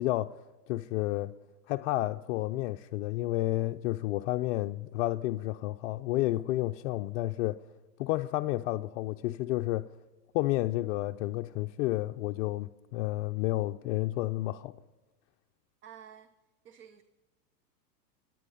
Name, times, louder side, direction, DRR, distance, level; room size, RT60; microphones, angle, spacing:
voice 1, 0.0-1.3 1.7-7.6 8.0-9.9 10.3-14.7, left 17 dB, 50° left, 0.6 m, -31 dB
voice 2, 15.8-16.3 16.6-17.0, right 9 dB, 25° right, 0.6 m, -51 dB
26.0 x 9.3 x 5.5 m
supercardioid pair, 130°, 48 cm